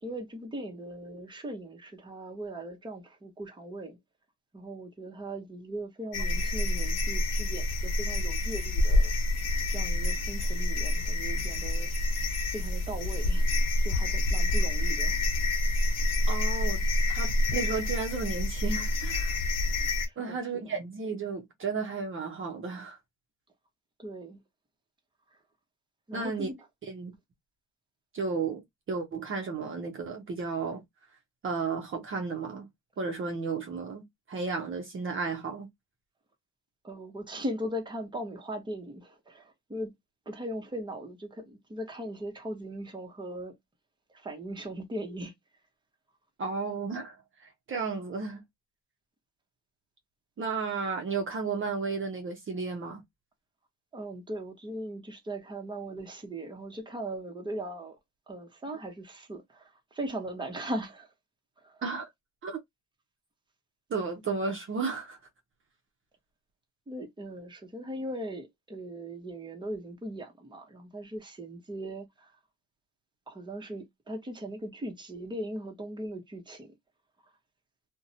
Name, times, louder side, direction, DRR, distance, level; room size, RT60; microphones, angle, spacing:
voice 1, 0.0-4.0 4.5-9.1 9.7-11.9 12.5-15.2 20.1-20.7 24.0-24.4 26.1-26.5 36.8-39.9 40.3-43.5 44.1-45.3 53.9-58.0 58.3-61.1 61.6-61.8 66.9-72.3 73.3-76.7, right 1 dB, 15° right, 0.9 m, -39 dB
sound 1, 6.1-20.1, left 1 dB, 60° left, 0.8 m, -27 dB
voice 2, 16.3-16.8 17.1-19.4 20.2-23.0 26.1-26.5 26.9-27.1 28.1-30.8 31.4-32.7 33.0-35.7 46.4-48.4 50.4-53.0 61.8-62.1 62.4-62.6 63.9-65.2, right 4 dB, 40° right, 0.7 m, -33 dB
2.5 x 2.1 x 2.7 m
cardioid pair, 90°, 30 cm